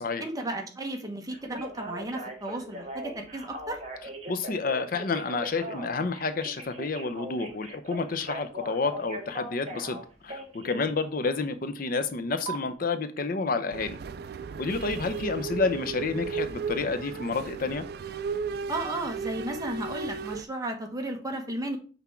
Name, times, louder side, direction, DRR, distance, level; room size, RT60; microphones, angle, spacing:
voice 1, 0.2-3.8 18.7-21.8, right 1 dB, 20° right, 3 dB, 1.1 m, -34 dB
Telephone, 1.3-10.9 12.5-12.6, right 1 dB, 40° right, 1.4 m, -39 dB
voice 2, 4.3-10.0 10.2-14.0 14.6-17.8, left 4 dB, 55° left, 9 dB, 0.6 m, -29 dB
sound 1, 13.7-20.4, right 5 dB, 60° right, 0.4 m, -35 dB
5.9 x 3.5 x 5.7 m, 0.37 s
head